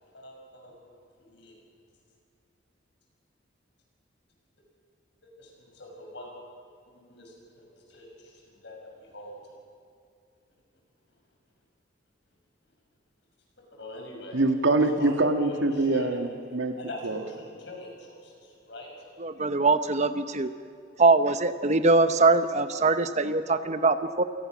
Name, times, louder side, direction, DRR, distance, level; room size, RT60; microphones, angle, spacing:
voice 1, 0.1-0.8 1.3-1.5 5.2-6.3 6.9-9.3 13.7-14.4 15.0-16.3 16.8-18.9, left 1 dB, 70° left, 0 dB, 6.5 m, -43 dB
voice 2, 14.3-16.8 17.0-17.2, right 2 dB, 90° right, 6 dB, 1.5 m, -24 dB
voice 3, 19.2-20.5 21.0-24.2, right 3 dB, 40° right, 10 dB, 0.9 m, -22 dB
27.5 x 18.0 x 6.2 m, 2.4 s
head